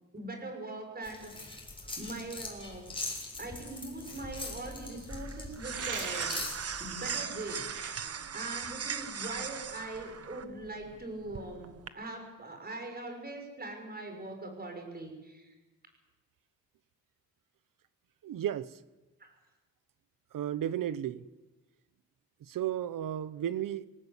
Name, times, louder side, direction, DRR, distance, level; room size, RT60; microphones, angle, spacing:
voice 1, 0.1-1.5 2.0-3.0 3.4-6.4 6.8-15.6 19.2-19.3, right 2 dB, 30° right, 6.5 m, -42 dB
sound 1, 1.0-7.2, left 2 dB, 15° left, 6.9 m, -42 dB
sound 2, 3.4-11.9, right 7 dB, 50° right, 1.3 m, -40 dB
sound 3, 5.7-6.5 7.7-7.9, right 6 dB, 65° right, 2.9 m, -39 dB
voice 2, 18.2-18.7 20.3-21.2 22.5-23.9, right 11 dB, 85° right, 1.1 m, -33 dB
26.5 x 18.0 x 8.4 m
cardioid pair, 120°, 32 cm